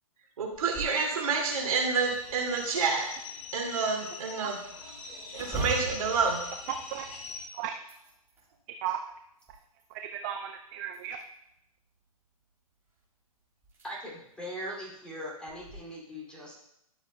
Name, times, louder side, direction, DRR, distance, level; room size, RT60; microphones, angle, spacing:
voice 1, 0.4-3.1 3.5-4.6 5.3-6.4, right 5 dB, 65° right, -1 dB, 2.4 m, -28 dB
sound 1, 0.5-1.0 1.5-1.6 2.1-2.9 5.3-7.3 7.7-8.5 9.1-10.0 10.9-11.5 13.0-13.1 13.6-13.9 14.3-14.4 15.5-15.7, right 3 dB, 10° right, 3.0 m, -40 dB
sound 2, 1.4-7.5, left 5 dB, 75° left, 2.2 m, -43 dB
voice 2, 6.7-7.2 7.5-7.7 8.8-9.0 9.9-11.2, right 10 dB, 30° right, 5 dB, 0.5 m, -35 dB
voice 3, 13.8-16.5, equal, 5° left, -6 dB, 2.6 m, -40 dB
11.5 x 7.0 x 2.3 m, 0.77 s
hypercardioid pair, 125°, 19 cm